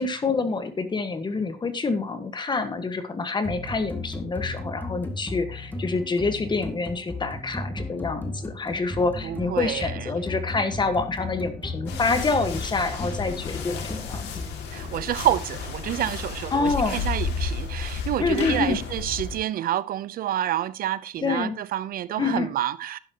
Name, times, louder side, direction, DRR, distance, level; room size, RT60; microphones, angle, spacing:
voice 1, 0.0-14.4 16.5-17.1 18.2-18.8 21.2-21.6 22.2-22.5, left 4 dB, 25° left, 1.5 m, -27 dB
sound 1, 3.4-14.4, left 2 dB, 10° left, 2.0 m, -35 dB
voice 2, 9.2-10.3 14.7-23.0, right 12 dB, 60° right, 0.7 m, -28 dB
sound 2, 11.9-19.4, left 5 dB, 90° left, 2.3 m, -32 dB
11.0 x 10.5 x 2.9 m
cardioid pair, 110°, 17 cm